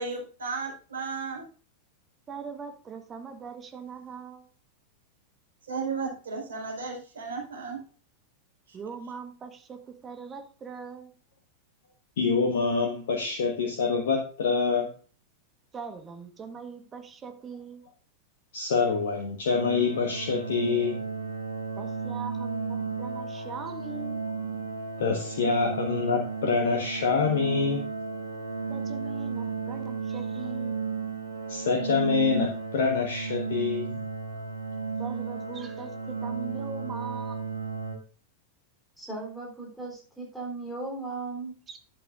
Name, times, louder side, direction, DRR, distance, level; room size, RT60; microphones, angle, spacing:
voice 1, 0.0-1.4 5.7-7.8, right 4 dB, 65° right, -1 dB, 4.6 m, -34 dB
voice 2, 2.3-4.5 8.7-11.1 15.7-17.8 21.8-24.3 28.7-30.8 35.0-37.4 41.7-41.8, right 5 dB, 25° right, 6 dB, 1.4 m, -41 dB
voice 3, 12.2-14.9 18.5-21.0 25.0-27.8 31.5-34.0, left 5 dB, 60° left, 2 dB, 1.4 m, -26 dB
sound 1, 19.5-37.9, right 4 dB, 80° right, 2.1 m, -34 dB
voice 4, 39.0-41.5, right 3 dB, ahead, -3 dB, 3.6 m, -37 dB
11.0 x 8.5 x 2.5 m, 0.38 s
figure-of-eight pair, 90°, 0 cm